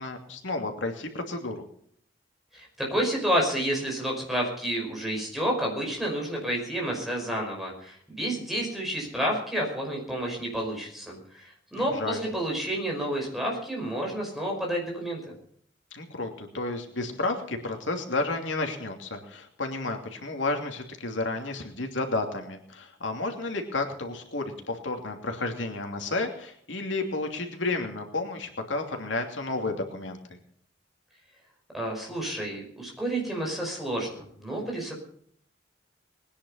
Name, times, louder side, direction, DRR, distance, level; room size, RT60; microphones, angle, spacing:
voice 1, 0.0-1.6 11.7-12.2 15.9-30.4, left 2 dB, 90° left, 4 dB, 2.8 m, -32 dB
voice 2, 2.5-15.2 31.7-35.0, right 1 dB, ahead, -1 dB, 5.4 m, -30 dB
21.0 x 10.0 x 5.7 m, 0.63 s
head